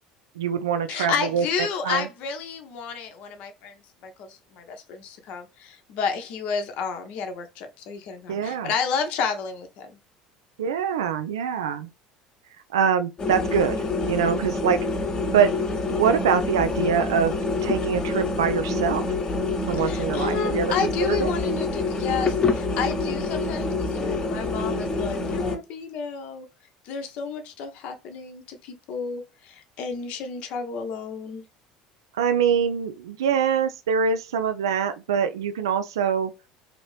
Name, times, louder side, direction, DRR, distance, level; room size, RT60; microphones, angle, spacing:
voice 1, 0.4-1.4 1.8-2.1 8.3-8.7 10.6-11.9 12.7-14.8 15.3-15.5 15.9-17.3 17.6-19.0 19.7-20.7 21.1-21.3 32.1-36.3, right 7 dB, 90° right, 0.4 m, -24 dB
voice 2, 0.9-9.9 19.8-26.5 26.8-31.4, left 6 dB, 65° left, 0.8 m, -31 dB
sound 1, 13.2-25.6, left 3 dB, 35° left, 0.9 m, -26 dB
2.9 x 2.6 x 3.1 m
hypercardioid pair, 80°, 2 cm